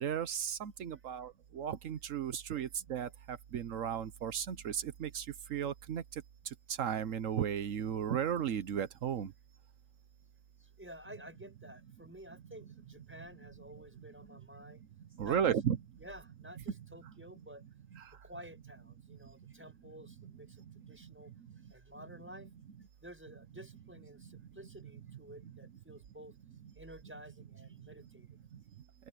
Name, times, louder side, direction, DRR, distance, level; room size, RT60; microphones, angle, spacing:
voice 1, 0.0-1.3 1.6-3.1 3.5-4.7 5.0-5.2 5.5-6.0 6.8-9.3 15.2-15.8, right 8 dB, 85° right, 1.3 m, -34 dB
voice 2, 10.6-14.8 15.1-15.6 16.0-17.6 18.2-21.3 21.7-22.5 23.0-26.4 26.8-28.3, equal, 10° right, 6.4 m, -52 dB
open air
omnidirectional pair, 1.3 m